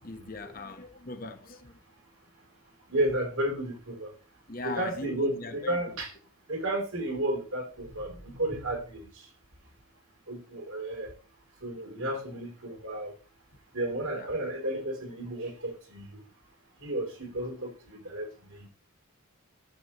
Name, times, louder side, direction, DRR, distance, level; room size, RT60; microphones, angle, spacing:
voice 1, 0.0-1.8 4.5-5.8 14.2-14.3, left 2 dB, 40° left, 1.1 m, -39 dB
voice 2, 2.9-4.1 4.6-6.1 6.5-9.0 10.3-11.1 11.6-13.1 13.7-16.2 16.8-18.7, right 1 dB, 75° right, 3.5 m, -32 dB
13.0 x 8.1 x 3.0 m
head